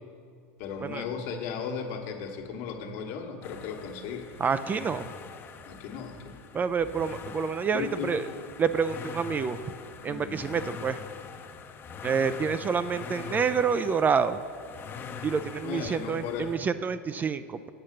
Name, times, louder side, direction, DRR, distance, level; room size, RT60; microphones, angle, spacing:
voice 1, 0.6-4.3 5.6-6.4 7.7-8.1 10.0-10.5 15.6-16.5, left 6 dB, 60° left, 2 dB, 1.3 m, -36 dB
sound 1, 3.4-16.6, left 6 dB, 30° left, 0.7 m, -43 dB
voice 2, 4.4-5.1 6.5-8.2 8.6-9.6 10.0-11.0 12.0-14.4 15.2-17.7, right 6 dB, 25° right, 12 dB, 0.3 m, -28 dB
8.7 x 6.4 x 6.5 m, 2.4 s
hypercardioid pair, 95°, 8 cm